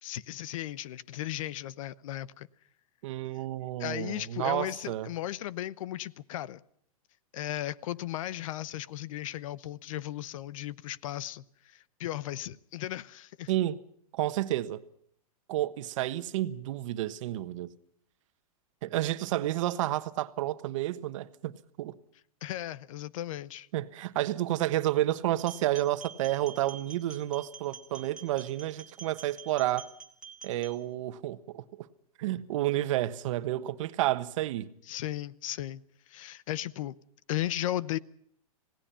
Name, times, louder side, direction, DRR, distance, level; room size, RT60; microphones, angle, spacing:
voice 1, 0.0-2.5 3.8-6.6 7.3-13.5 22.4-23.7 34.9-35.8 36.1-36.9 37.3-38.0, left 13 dB, 60° left, 0.9 m, -36 dB
voice 2, 3.0-5.1 13.5-13.8 14.1-14.8 15.5-17.7 18.8-21.9 23.7-29.9 30.4-31.9 32.2-34.7, right 14 dB, 55° right, 1.3 m, -30 dB
sound 1, 25.4-30.7, right 6 dB, 5° right, 2.4 m, -47 dB
27.5 x 18.5 x 5.7 m
hypercardioid pair, 145°, 19 cm